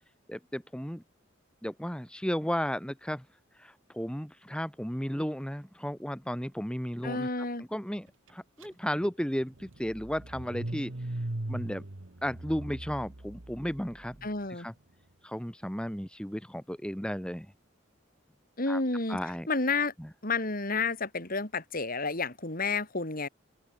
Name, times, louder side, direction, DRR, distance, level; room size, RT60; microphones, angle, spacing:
voice 1, 0.3-1.0 1.6-3.2 3.6-7.3 7.7-10.9 11.5-11.8 12.2-14.3 14.6-14.7 15.2-17.5 18.7-18.8 19.1-19.5 20.0-20.1, equal, 5° left, 2.6 m, -34 dB
voice 2, 7.0-7.6 14.2-14.7 18.6-19.2 19.5-19.9 20.2-23.3, left 3 dB, 45° left, 3.8 m, -30 dB
Car / Engine starting, 8.6-8.7 9.0-14.2, right 1 dB, 70° right, 1.6 m, -39 dB
open air
head